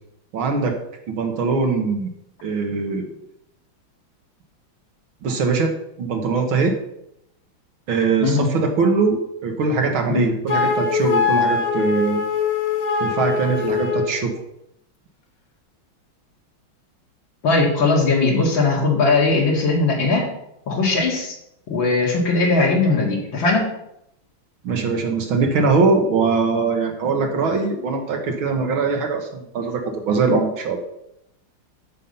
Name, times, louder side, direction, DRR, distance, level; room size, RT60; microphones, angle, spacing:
voice 1, 0.3-0.8 1.1-2.1 2.4-3.1 5.2-6.8 7.9-12.2 13.0-14.3 24.6-30.8, right 4 dB, 75° right, 2 dB, 2.1 m, -21 dB
Wind instrument woodwind instrument, 10.5-14.2, left 5 dB, 45° left, 1.9 m, -22 dB
voice 2, 17.4-20.3 20.7-21.3 21.7-23.7, left 3 dB, 70° left, -2 dB, 2.8 m, -19 dB
13.0 x 5.6 x 5.5 m, 0.79 s
omnidirectional pair, 2.2 m